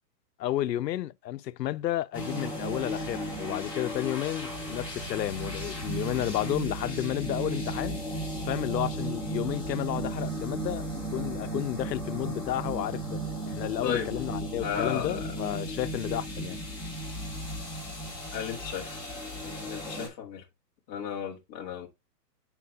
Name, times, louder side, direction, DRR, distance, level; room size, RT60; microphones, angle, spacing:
voice 1, 0.4-8.0 8.4-10.8 11.1-16.6, left 13 dB, 90° left, 0.6 m, -32 dB
sound 1, 2.1-20.1, right 1 dB, 5° right, 1.6 m, -35 dB
voice 2, 14.6-15.2 18.3-19.0 19.4-20.4 20.9-21.9, left 8 dB, 15° left, 0.7 m, -34 dB
9.8 x 4.4 x 2.7 m
hypercardioid pair, 165°, 49 cm